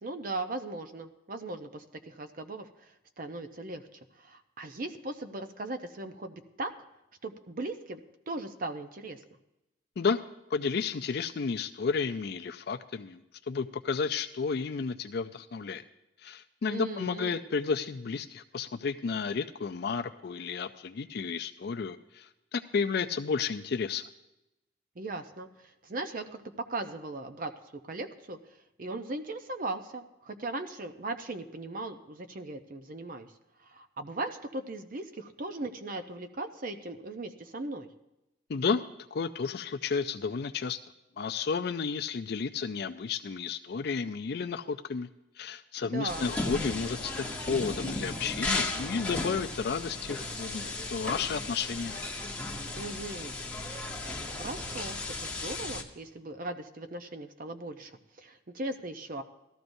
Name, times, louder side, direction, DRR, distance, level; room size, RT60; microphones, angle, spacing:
voice 1, 0.0-3.8 4.2-6.7 7.2-8.0 8.3-9.2 16.7-17.4 25.0-26.4 26.7-27.5 27.8-28.4 28.8-33.3 33.6-37.9 45.9-46.3 52.7-53.4 53.7-54.0 54.3-59.2, right 2 dB, 45° right, 8 dB, 0.6 m, -38 dB
voice 2, 10.5-13.2 13.5-15.8 16.2-24.0 38.5-38.8 39.1-40.8 41.2-45.1 45.4-52.0, left 5 dB, 60° left, 7 dB, 0.4 m, -32 dB
sound 1, 46.1-55.8, left 2 dB, 5° left, 1.0 m, -35 dB
18.0 x 13.5 x 2.6 m, 0.93 s
head